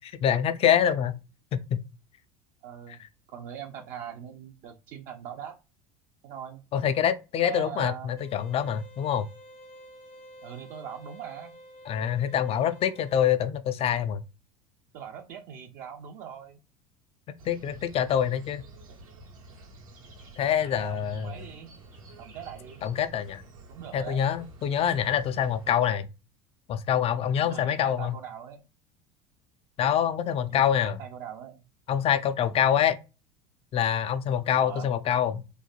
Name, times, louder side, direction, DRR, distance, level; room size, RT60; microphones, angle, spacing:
voice 1, 0.2-1.2 1.5-1.8 6.7-9.3 11.9-14.2 17.5-18.6 20.4-21.3 22.8-23.4 23.9-26.1 26.7-28.1 29.8-31.0 31.9-33.0 33.7-35.4, left 9 dB, 35° left, 0.4 m, -25 dB
voice 2, 2.6-3.0 3.3-5.5 6.2-6.6 7.4-8.1 10.4-11.5 14.9-16.6 20.6-21.7 22.2-22.8 23.7-24.2 27.4-28.6 30.5-30.6 31.0-31.6 34.6-34.9, right 9 dB, 50° right, 0.5 m, -41 dB
sound 1, 8.2-13.2, equal, 60° left, 0.8 m, -50 dB
sound 2, 17.4-25.7, right 2 dB, 80° right, 0.9 m, -50 dB
3.1 x 2.1 x 2.4 m
hypercardioid pair, 75°, 17 cm